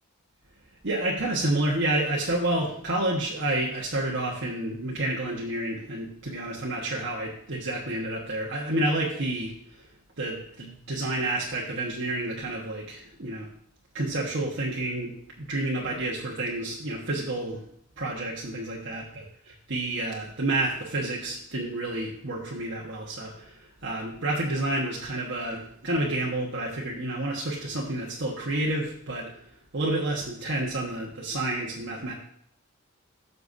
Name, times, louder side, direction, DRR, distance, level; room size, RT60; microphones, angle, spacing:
voice 1, 0.8-9.8 10.2-13.5 13.9-17.6 18.0-19.2 19.7-29.3 29.7-32.1, right 1 dB, 55° right, -4 dB, 1.3 m, -29 dB
13.5 x 6.8 x 2.7 m, 0.68 s
head